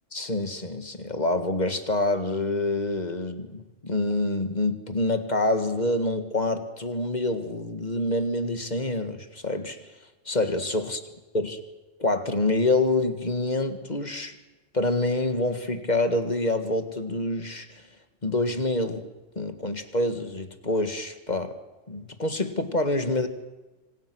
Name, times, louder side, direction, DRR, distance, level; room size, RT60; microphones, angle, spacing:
voice 1, 0.1-9.8 10.3-11.0 11.3-11.6 12.0-14.4 14.7-17.8 18.2-19.1 19.4-21.5 21.9-23.3, left 2 dB, 35° left, 9 dB, 1.9 m, -26 dB
27.0 x 25.5 x 6.3 m, 1.2 s
omnidirectional pair, 1.3 m